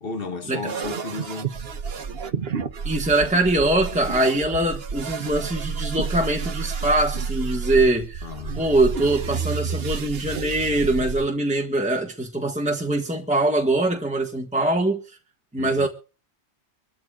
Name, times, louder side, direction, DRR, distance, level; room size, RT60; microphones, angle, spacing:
voice 1, 0.0-1.5 8.2-8.7 15.6-15.9, left 4 dB, 55° left, 1.8 m, -33 dB
sound 1, 0.7-11.3, right 6 dB, 65° right, 1.2 m, -30 dB
voice 2, 2.8-8.3 8.6-15.0 15.5-15.9, right 2 dB, 5° right, 1.5 m, -22 dB
25.0 x 13.5 x 2.4 m
omnidirectional pair, 1.1 m